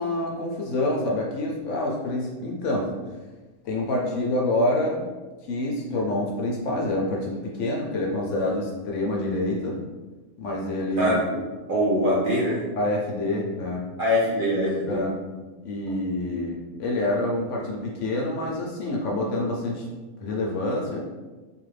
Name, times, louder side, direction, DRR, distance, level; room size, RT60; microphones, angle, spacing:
voice 1, 0.0-2.9 3.6-5.1 5.5-9.8 10.4-11.2 12.8-13.9 14.9-15.1 15.6-19.9 20.2-21.0, left 1 dB, 70° left, -2 dB, 0.8 m, -27 dB
voice 2, 11.0-11.4 11.7-12.6 14.0-15.0, equal, 55° right, -7 dB, 0.6 m, -23 dB
2.6 x 2.4 x 3.1 m, 1.2 s
omnidirectional pair, 1.5 m